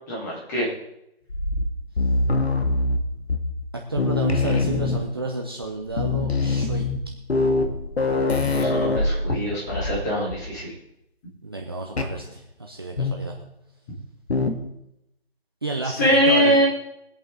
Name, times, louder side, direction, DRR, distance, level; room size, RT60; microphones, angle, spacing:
voice 1, 0.1-0.7 8.5-10.7 15.9-16.7, equal, 15° left, -6 dB, 3.4 m, -22 dB
sound 1, 1.3-3.7 4.0-5.3 5.6-5.7 5.9-10.0 10.3-10.6 12.0-12.2 13.0-13.4 14.3-14.7, left 2 dB, 75° left, 1.9 m, -24 dB
voice 2, 3.9-6.9 11.4-13.3 15.6-16.6, right 2 dB, 25° right, 0 dB, 0.7 m, -30 dB
23.0 x 8.4 x 3.8 m, 0.80 s
figure-of-eight pair, 170°, 32 cm